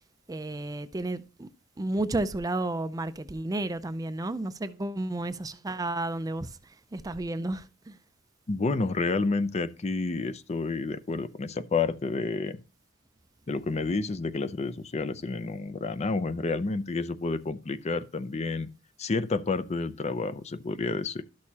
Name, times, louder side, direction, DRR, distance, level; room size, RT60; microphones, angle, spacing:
voice 1, 0.3-1.5 1.8-6.5 6.9-7.9, right 2 dB, 20° right, 0.4 m, -32 dB
voice 2, 8.5-12.6 13.5-18.7 19.0-21.2, left 3 dB, 35° left, 0.5 m, -30 dB
12.5 x 6.4 x 2.8 m
head